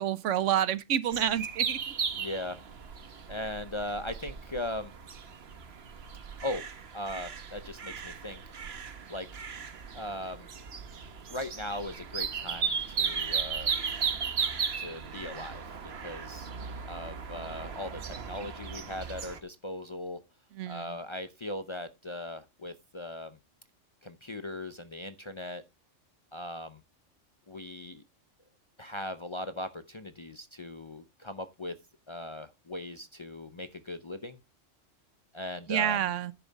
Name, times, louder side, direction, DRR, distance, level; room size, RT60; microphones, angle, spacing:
voice 1, 0.0-1.8 20.6-20.9 35.7-36.3, right 10 dB, 80° right, 1.1 m, -28 dB
sound 1, 1.1-19.4, right 6 dB, 55° right, 1.3 m, -36 dB
voice 2, 2.2-2.6 3.3-4.9 6.4-6.6 6.9-8.4 9.1-9.3 9.9-10.5 11.3-13.7 14.8-15.6 16.0-16.5 16.9-20.2 20.7-23.4 24.0-25.6 26.3-26.8 27.5-28.0 28.8-31.8 32.1-34.4 35.3-36.0, left 1 dB, 30° left, 0.6 m, -39 dB
10.5 x 7.0 x 4.0 m
omnidirectional pair, 1.3 m